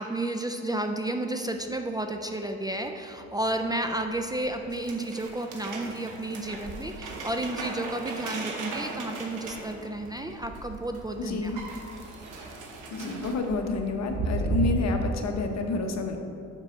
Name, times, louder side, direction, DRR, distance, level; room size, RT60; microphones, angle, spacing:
voice 1, 0.0-11.5, right 1 dB, 15° right, 5 dB, 0.4 m, -32 dB
sound 1, 1.5-2.7 3.0-14.7, right 2 dB, 40° right, 0.9 m, -38 dB
sound 2, 4.7-10.6 10.9-11.0 11.3-13.3, right 3 dB, 85° right, 1.1 m, -39 dB
voice 2, 11.3-11.6 12.9-16.2, left 3 dB, 60° left, 4 dB, 0.9 m, -29 dB
5.4 x 5.2 x 6.3 m, 2.6 s
cardioid pair, 90°, 30 cm